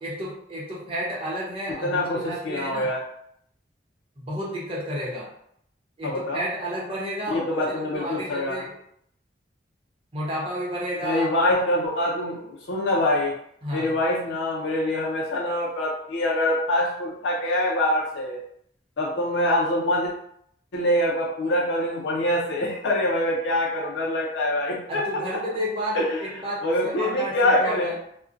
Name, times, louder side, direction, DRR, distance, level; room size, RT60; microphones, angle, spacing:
voice 1, 0.0-2.9 4.2-5.3 6.0-8.7 10.1-11.3 13.6-14.0 24.9-28.0, equal, 30° right, -5 dB, 0.7 m, -31 dB
voice 2, 1.8-3.0 6.0-6.4 7.3-8.6 11.0-13.3 13.7-18.4 19.0-20.1 20.7-25.0 25.9-26.2 26.6-27.9, left 1 dB, 80° left, -3 dB, 0.5 m, -24 dB
2.5 x 2.1 x 2.4 m, 0.71 s
head